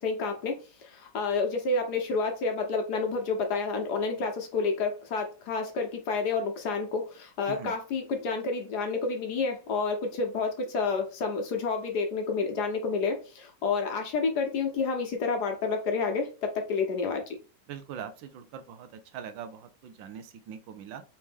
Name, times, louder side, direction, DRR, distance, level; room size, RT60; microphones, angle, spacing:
voice 1, 0.0-17.4, left 4 dB, 65° left, 1.3 m, -29 dB
voice 2, 17.7-21.0, right 8 dB, 85° right, 1.4 m, -42 dB
4.2 x 3.1 x 3.5 m
omnidirectional pair, 2.0 m